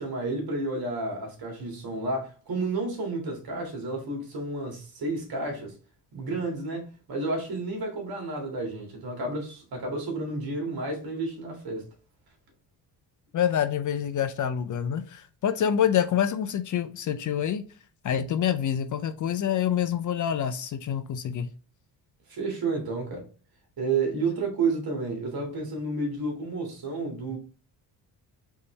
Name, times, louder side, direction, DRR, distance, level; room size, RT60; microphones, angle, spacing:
voice 1, 0.0-5.8 6.1-11.9 22.3-23.3 23.8-27.4, right 3 dB, 60° right, 2.0 m, -31 dB
voice 2, 13.3-17.6 18.0-21.5, left 9 dB, 45° left, 0.5 m, -26 dB
4.1 x 3.6 x 3.2 m
cardioid pair, 85°, 42 cm